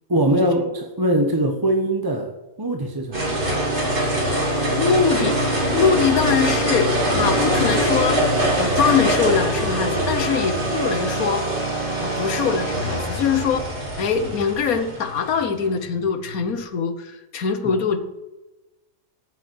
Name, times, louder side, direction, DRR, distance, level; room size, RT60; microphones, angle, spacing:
voice 1, 0.1-2.3 2.6-3.4 17.6-17.8, right 1 dB, 20° right, 3 dB, 0.9 m, -22 dB
sound 1, 3.1-16.5, right 1 dB, 35° right, 3.2 m, -23 dB
voice 2, 4.8-5.4 5.7-8.2 8.6-11.4 12.0-13.7 14.0-18.0, left 6 dB, 85° left, 8 dB, 1.5 m, -22 dB
8.4 x 7.5 x 8.2 m, 1.0 s
omnidirectional pair, 1.5 m